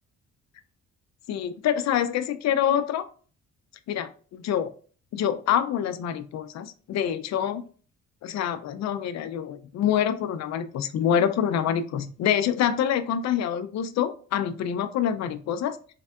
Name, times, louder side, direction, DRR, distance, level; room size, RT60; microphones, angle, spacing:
voice 1, 1.3-3.0 3.9-4.1 4.4-4.7 5.1-7.7 8.2-15.8, left 9 dB, 60° left, 10 dB, 0.5 m, -26 dB
3.5 x 3.3 x 2.3 m, 0.41 s
cardioid pair, 90°, 30 cm